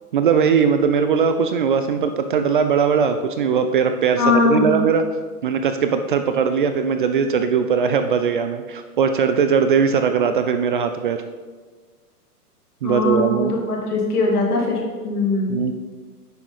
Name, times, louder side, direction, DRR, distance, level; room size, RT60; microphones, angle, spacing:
voice 1, 0.1-5.0 5.4-11.2 12.8-13.5 15.5-15.7, right 6 dB, 35° right, 8 dB, 0.4 m, -19 dB
voice 2, 4.2-4.7 12.8-15.6, left 3 dB, 70° left, -1 dB, 2.6 m, -21 dB
9.5 x 6.3 x 4.0 m, 1.4 s
hypercardioid pair, 125°, 47 cm